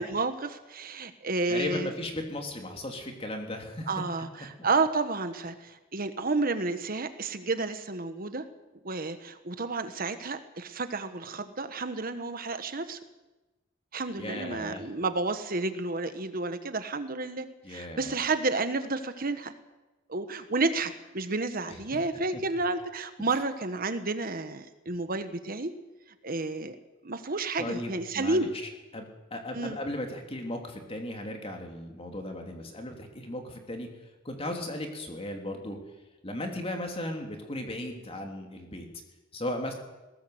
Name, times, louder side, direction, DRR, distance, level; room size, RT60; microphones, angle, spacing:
voice 1, 0.0-1.9 3.9-8.4 8.8-13.0 13.9-19.5 20.1-25.7 26.2-26.8 27.0-28.5 29.5-29.8, right 3 dB, 45° right, 10 dB, 1.2 m, -31 dB
voice 2, 1.5-3.9 4.4-4.7 14.2-14.8 17.6-18.2 21.9-22.1 22.3-22.4 27.6-28.5 28.9-33.9 34.2-35.8 36.2-38.9 39.3-39.7, left 1 dB, 30° left, 3 dB, 3.1 m, -36 dB
20.5 x 17.5 x 7.9 m, 1.1 s
head